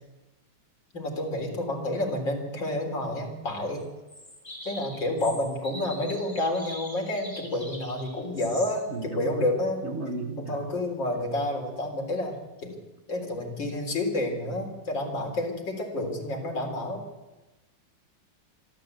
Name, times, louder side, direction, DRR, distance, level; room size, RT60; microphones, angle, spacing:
voice 1, 0.9-3.8 4.7-9.9 10.4-12.7 13.1-17.0, left 1 dB, 70° left, 2 dB, 4.4 m, -29 dB
sound 1, 3.8-3.9 4.1-8.9, equal, 15° left, 3.7 m, -43 dB
voice 2, 8.9-9.5 9.8-10.7, right 3 dB, 35° right, 4 dB, 1.8 m, -34 dB
25.5 x 12.5 x 8.1 m, 1.1 s
omnidirectional pair, 2.1 m